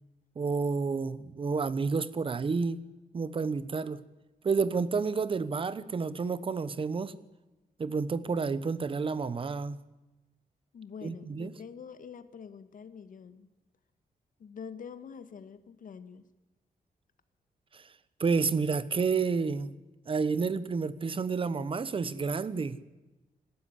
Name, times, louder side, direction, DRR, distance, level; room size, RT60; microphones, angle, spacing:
voice 1, 0.4-2.8 3.1-4.0 4.4-7.1 7.8-9.8 11.0-11.5 17.7-17.9 18.2-19.7 20.1-22.8, right 5 dB, 35° right, 17 dB, 1.0 m, -30 dB
voice 2, 10.7-13.5 14.4-16.2, left 6 dB, 60° left, 12 dB, 1.7 m, -46 dB
26.0 x 13.0 x 10.0 m, 1.1 s
wide cardioid pair, 160°, 16 cm